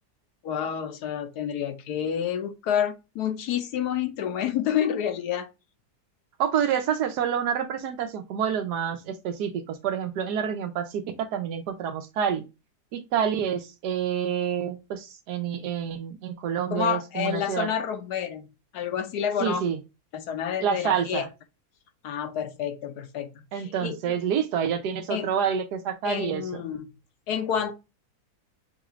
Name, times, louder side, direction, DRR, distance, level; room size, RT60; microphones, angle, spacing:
voice 1, 0.4-5.5 16.7-18.5 18.7-19.6 20.1-21.3 22.0-24.2 25.1-25.3 26.0-26.9 27.3-27.7, left 9 dB, 75° left, 1.3 m, -29 dB
voice 2, 6.4-12.4 12.9-17.7 19.4-19.8 20.6-21.2 23.5-26.6, right 8 dB, 90° right, 1.3 m, -28 dB
6.7 x 2.4 x 3.0 m
omnidirectional pair, 1.7 m